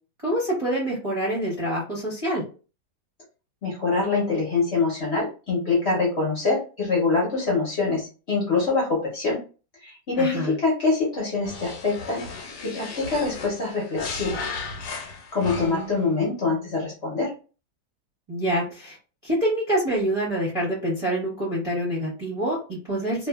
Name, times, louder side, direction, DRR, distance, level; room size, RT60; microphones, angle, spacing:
voice 1, 0.2-2.4 10.2-10.5 15.4-16.0 18.3-19.0 19.2-23.3, right 1 dB, 30° right, -7 dB, 0.7 m, -26 dB
voice 2, 3.6-9.4 9.8-12.2 12.6-14.5 15.3-17.3, left 3 dB, 50° left, -3 dB, 0.9 m, -24 dB
sound 1, 11.4-16.0, left 4 dB, 75° left, 1.2 m, -35 dB
2.7 x 2.3 x 2.3 m, 0.35 s
omnidirectional pair, 1.9 m